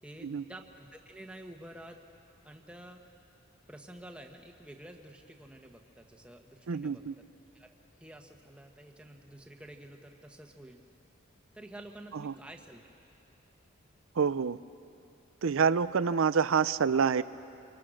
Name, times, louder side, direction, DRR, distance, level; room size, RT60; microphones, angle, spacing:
voice 1, 0.0-2.0 2.4-3.0 3.7-7.0 7.5-7.7 8.0-10.8 11.5-13.1, right 1 dB, 5° right, 2 dB, 1.3 m, -49 dB
voice 2, 6.7-7.1 12.1-12.3 14.1-14.6 15.4-17.2, right 6 dB, 75° right, 15 dB, 0.5 m, -27 dB
26.5 x 25.0 x 6.4 m, 2.7 s
head